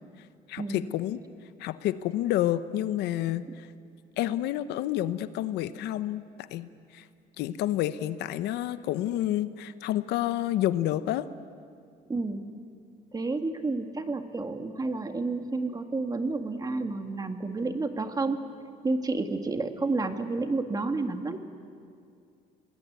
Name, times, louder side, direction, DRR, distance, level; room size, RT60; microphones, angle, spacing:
voice 1, 0.5-1.2 1.6-3.7 4.2-6.2 6.5-7.1 7.4-11.3, left 13 dB, 85° left, 13 dB, 0.9 m, -29 dB
voice 2, 12.1-12.4 13.1-18.4 18.8-21.4, right 3 dB, 20° right, 7 dB, 1.9 m, -30 dB
27.5 x 20.0 x 9.5 m, 2.3 s
cardioid pair, 110°, 17 cm